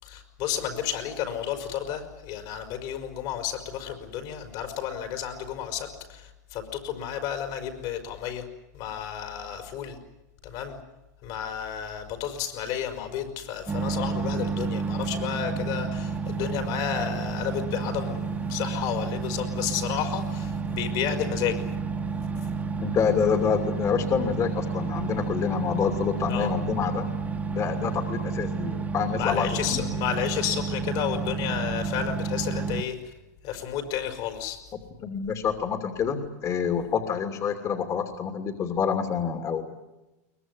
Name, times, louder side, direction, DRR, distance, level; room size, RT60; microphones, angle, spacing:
voice 1, 0.0-8.5 8.7-10.0 10.4-10.8 11.2-21.7 26.3-26.5 29.1-33.0 33.4-34.6, left 9 dB, 60° left, 6 dB, 5.1 m, -32 dB
sound 1, 13.7-32.8, right 5 dB, 15° right, 1.7 m, -30 dB
voice 2, 22.8-27.1 27.5-29.8 35.0-39.6, left 7 dB, 35° left, 5 dB, 2.8 m, -27 dB
23.0 x 20.5 x 9.6 m, 1.0 s
supercardioid pair, 115°, 9 cm